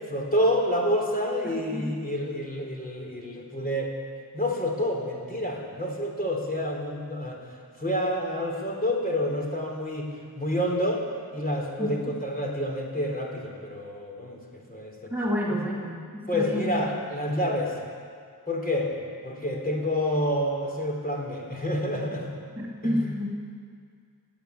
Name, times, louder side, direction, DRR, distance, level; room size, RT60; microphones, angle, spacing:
voice 1, 0.0-3.9 4.3-7.4 7.8-10.1 10.4-11.0 11.3-15.1 15.5-15.6 16.3-17.7 18.5-18.9 19.2-22.3 22.8-23.1, equal, 20° left, -1 dB, 3.4 m, -28 dB
voice 2, 15.1-16.7 22.6-23.3, equal, 5° right, -4 dB, 2.5 m, -29 dB
16.0 x 9.5 x 9.3 m, 2.1 s
wide cardioid pair, 60°, 39 cm